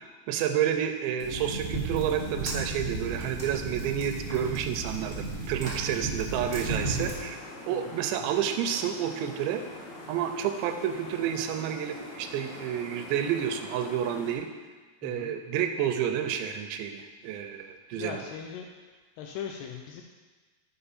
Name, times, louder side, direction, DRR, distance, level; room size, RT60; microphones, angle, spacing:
voice 1, 0.0-7.4 7.7-9.6 10.1-14.5 15.0-18.2, right 9 dB, 85° right, 7 dB, 2.8 m, -30 dB
sound 1, 1.2-7.1, right 2 dB, 30° right, 1.0 m, -34 dB
voice 2, 5.9-6.2 6.7-7.1 7.7-7.9 15.0-15.3 17.9-18.7 19.2-20.0, left 8 dB, 85° left, 2 dB, 2.3 m, -40 dB
sound 2, 6.4-14.3, left 1 dB, 65° left, 1.9 m, -44 dB
7.8 x 5.6 x 4.2 m, 1.4 s
omnidirectional pair, 5.0 m